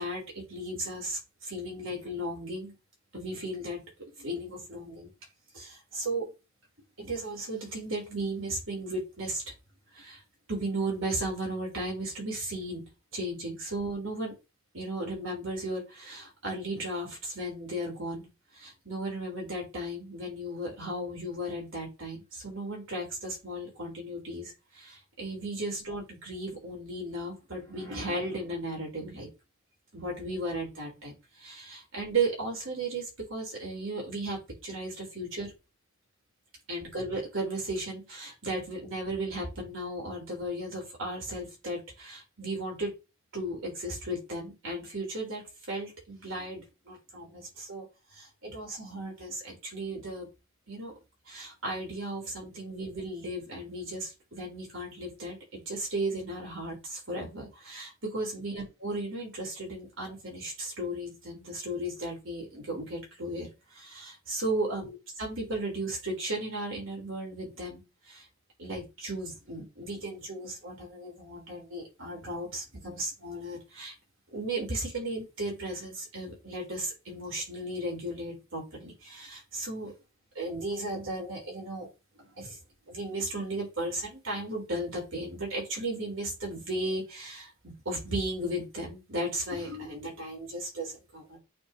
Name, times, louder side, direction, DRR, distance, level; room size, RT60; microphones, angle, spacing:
voice 1, 0.0-2.8 3.1-3.8 4.2-5.1 5.5-6.3 7.0-9.4 9.9-10.2 10.5-12.8 13.1-14.3 14.7-18.3 18.5-29.3 29.9-35.5 36.7-42.9 43.3-45.4 45.7-47.9 48.1-50.3 50.7-50.9 51.3-68.3 68.6-73.9 74.3-80.0 80.3-81.9 82.2-82.6 82.9-87.5 87.8-91.4, right 1 dB, 65° right, -2 dB, 4.9 m, -35 dB
8.4 x 5.1 x 3.3 m, 0.26 s
head